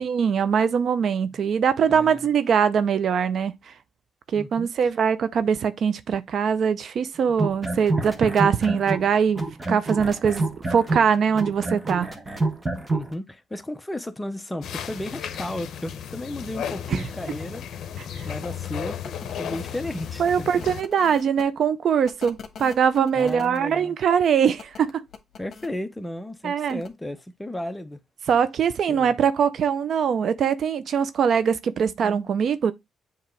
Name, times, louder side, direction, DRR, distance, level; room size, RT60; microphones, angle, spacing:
voice 1, 0.0-3.5 4.3-12.1 16.9-17.0 20.2-25.0 26.4-26.8 28.3-32.7, right 7 dB, 60° right, 0.5 m, -22 dB
voice 2, 1.9-2.3 4.3-4.9 12.9-17.6 18.2-20.2 23.1-24.0 25.4-28.0 28.9-29.1, left 1 dB, 10° left, 0.7 m, -34 dB
sound 1, 7.3-9.1 9.4-13.1, right 2 dB, 20° right, 1.3 m, -27 dB
sound 2, 14.6-20.8, left 8 dB, 70° left, 0.7 m, -34 dB
sound 3, 18.4-18.5 19.0-21.4 22.0-23.6 24.6-25.7 26.7-26.9, left 6 dB, 50° left, 1.3 m, -44 dB
7.5 x 3.0 x 4.5 m
cardioid pair, 90°, 0 cm